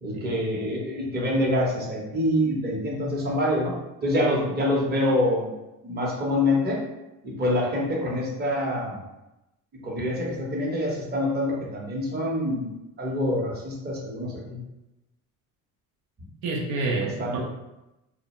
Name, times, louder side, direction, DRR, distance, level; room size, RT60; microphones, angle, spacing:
voice 1, 0.0-3.7 4.0-5.5 5.8-6.8 7.2-9.0 9.8-12.7 13.0-14.6 17.2-17.3, left 1 dB, 25° right, -3 dB, 0.7 m, -26 dB
voice 2, 16.4-17.4, right 3 dB, 70° right, -2 dB, 0.6 m, -28 dB
2.3 x 2.1 x 2.9 m, 0.95 s
supercardioid pair, 90°, 39 cm